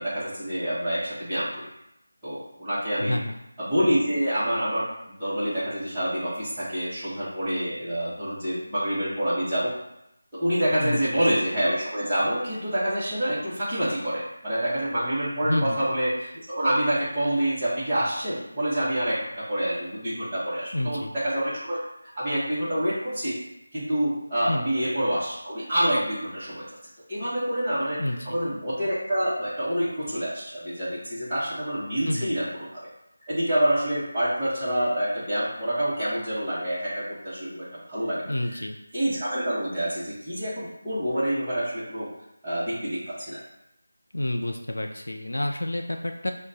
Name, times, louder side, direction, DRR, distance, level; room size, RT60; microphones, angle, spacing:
voice 1, 0.0-1.6 2.2-3.2 3.6-9.7 10.3-21.9 22.2-23.4 23.7-26.6 27.1-32.9 33.3-38.2 38.5-38.6 38.9-42.1 42.4-43.4, equal, 5° right, -21 dB, 0.8 m, -27 dB
voice 2, 3.0-3.4 10.8-11.2 15.4-15.8 20.7-21.1 24.5-24.7 28.0-28.4 32.0-32.3 38.3-38.8 44.1-46.3, left 1 dB, 85° left, 3 dB, 0.4 m, -29 dB
4.7 x 2.2 x 3.9 m, 0.84 s
figure-of-eight pair, 175°, 0 cm